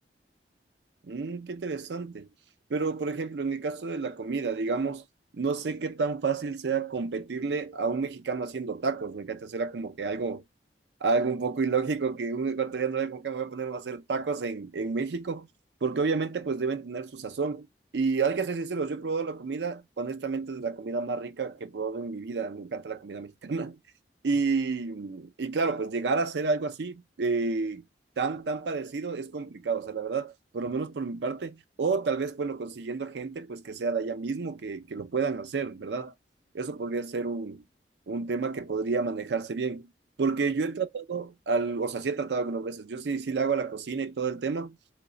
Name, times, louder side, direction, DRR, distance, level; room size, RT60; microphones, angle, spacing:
voice 1, 1.0-2.3 2.7-5.0 5.3-10.4 11.0-15.5 15.8-17.7 17.9-23.8 24.2-27.8 28.2-36.1 36.5-37.6 38.1-39.9 40.2-44.8, right 4 dB, 75° right, 0.5 m, -30 dB
3.1 x 2.2 x 3.7 m
head